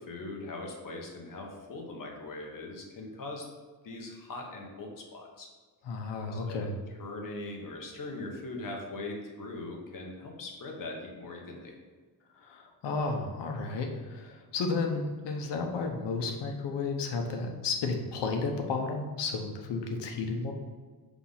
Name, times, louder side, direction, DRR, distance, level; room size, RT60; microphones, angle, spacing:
voice 1, 0.1-3.4 3.8-5.5 6.3-6.7 7.0-11.7, left 2 dB, 50° left, 1 dB, 1.3 m, -40 dB
voice 2, 5.8-6.7 12.4-20.5, left 4 dB, 90° left, 3 dB, 1.1 m, -32 dB
5.9 x 3.7 x 5.7 m, 1.4 s
wide cardioid pair, 150°, 41 cm